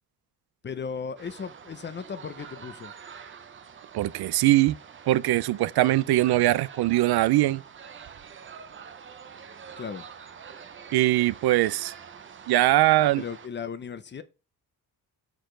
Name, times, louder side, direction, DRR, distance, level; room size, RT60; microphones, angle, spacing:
voice 1, 0.6-2.9 9.8-10.1 13.0-14.2, left 6 dB, 30° left, 0.5 m, -36 dB
sound 1, 1.2-13.5, right 7 dB, 30° right, 0.7 m, -46 dB
voice 2, 3.9-4.8 5.1-7.6 10.9-11.9 12.5-13.2, right 16 dB, 75° right, 0.5 m, -21 dB
6.5 x 4.8 x 3.8 m
cardioid pair, 150°, 38 cm